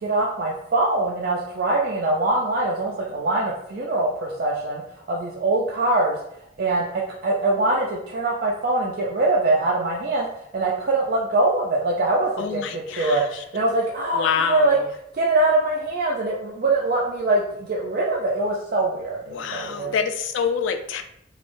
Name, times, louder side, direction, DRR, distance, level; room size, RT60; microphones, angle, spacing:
voice 1, 0.0-6.2 6.6-10.3 10.5-14.8 15.1-20.0, right 2 dB, 55° right, -3 dB, 0.4 m, -23 dB
voice 2, 12.4-13.4 14.1-14.8 19.3-21.0, left 6 dB, 90° left, 7 dB, 0.3 m, -26 dB
3.0 x 2.0 x 2.5 m, 0.75 s
head